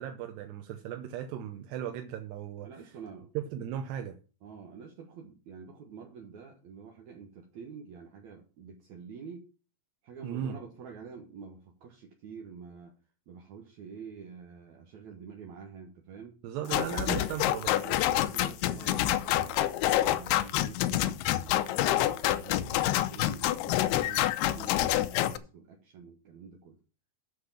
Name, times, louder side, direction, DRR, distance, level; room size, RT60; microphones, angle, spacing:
voice 1, 0.0-2.7 3.4-4.2 10.2-10.6 16.4-17.8, right 10 dB, 80° right, 2.9 m, -36 dB
voice 2, 2.6-3.3 4.4-9.5 10.0-12.9 13.3-16.4 17.8-26.8, right 6 dB, 65° right, 1.9 m, -48 dB
sound 1, 16.7-25.4, left 13 dB, 80° left, 2.6 m, -27 dB
7.8 x 6.7 x 7.1 m
omnidirectional pair, 4.9 m